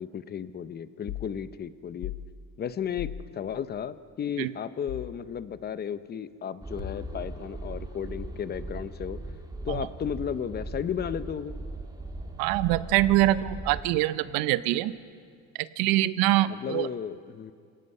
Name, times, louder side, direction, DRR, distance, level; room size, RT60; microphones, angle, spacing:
voice 1, 0.0-2.1 2.6-9.2 9.6-11.5 16.5-17.5, left 8 dB, 30° left, 14 dB, 0.6 m, -34 dB
sound 1, 1.1-1.3 2.0-2.3 3.0-3.2 4.9-5.2 6.8-7.3, left 14 dB, 75° left, 0.9 m, -37 dB
sound 2, 6.6-13.9, right 2 dB, 10° right, 1.7 m, -39 dB
voice 2, 12.4-14.9 15.8-16.9, right 15 dB, 90° right, 15 dB, 0.8 m, -24 dB
27.0 x 17.5 x 5.5 m, 2.2 s
cardioid pair, 135°, 34 cm